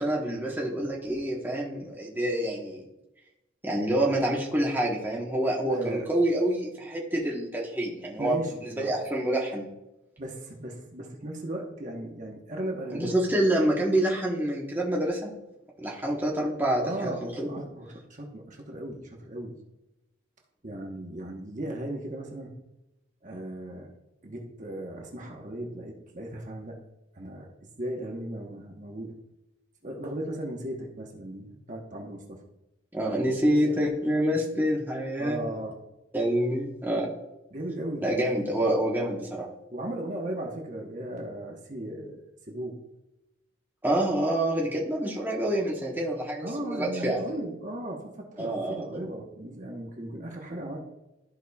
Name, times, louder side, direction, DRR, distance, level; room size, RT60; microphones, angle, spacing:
voice 1, 0.0-2.8 3.6-9.7 12.9-15.3 15.8-17.5 32.9-35.4 36.1-37.1 38.0-39.5 43.8-47.2 48.4-48.8, right 1 dB, 10° right, -4 dB, 1.1 m, -27 dB
voice 2, 5.7-6.1 8.2-8.9 10.2-13.1 16.8-17.2 17.5-19.6 20.6-22.5 23.2-23.9 24.2-26.8 27.1-27.5 27.8-29.1 29.8-32.4 33.4-33.8 34.3-34.7 35.2-35.7 37.5-38.0 39.7-42.8 44.6-44.8 46.4-50.8, right 1 dB, 40° right, 0 dB, 1.1 m, -36 dB
13.5 x 5.0 x 2.3 m, 0.94 s
head